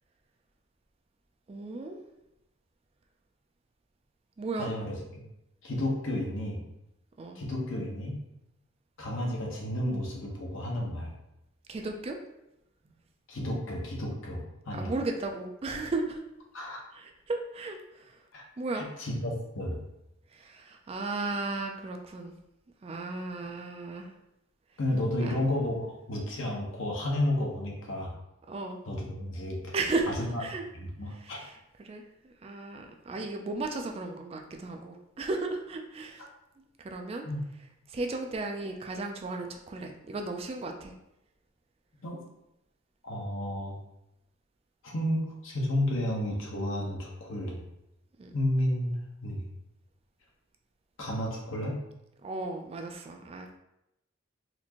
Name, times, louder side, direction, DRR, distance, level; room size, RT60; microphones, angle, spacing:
voice 1, 1.5-2.0 4.4-4.7 7.2-7.4 11.7-12.2 14.7-16.2 16.9-18.2 18.6-18.9 20.3-22.4 22.8-24.1 25.2-25.4 28.5-28.8 29.7-30.1 30.4-30.6 31.2-36.2 36.8-37.3 37.9-40.9 48.2-48.3 52.2-53.6, right 3 dB, 30° right, 3 dB, 0.3 m, -35 dB
voice 2, 4.6-5.3 5.6-6.6 7.3-8.2 9.0-11.1 13.3-14.9 16.5-16.8 18.3-18.4 18.7-19.8 24.8-28.1 28.8-29.7 30.2-30.4 30.7-31.4 37.2-37.4 42.0-42.2 43.0-43.8 44.8-47.6 48.3-49.5 51.0-51.8, left 1 dB, 70° left, -2 dB, 1.0 m, -32 dB
4.2 x 2.5 x 2.9 m, 0.86 s
head